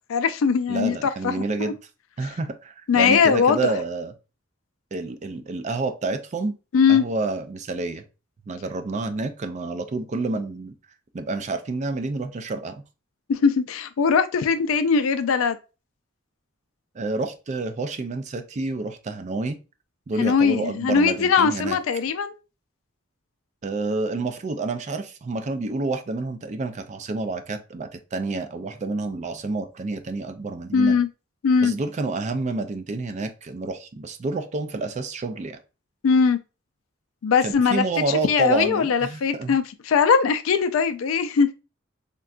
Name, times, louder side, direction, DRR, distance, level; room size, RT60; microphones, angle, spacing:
voice 1, 0.1-1.3 1.6-1.7 2.9-3.7 6.7-7.0 13.3-15.6 20.2-22.3 30.7-31.1 31.4-31.7 36.0-36.4 37.2-37.8 38.2-41.5, left 6 dB, 80° left, 0.4 m, -20 dB
voice 2, 0.7-1.8 2.2-4.1 4.9-6.6 6.9-8.0 8.5-10.7 11.1-12.8 16.9-19.6 20.1-21.8 23.6-30.9 31.6-35.6 37.4-39.6, right 3 dB, 35° right, 0.4 m, -29 dB
3.7 x 2.2 x 2.4 m
head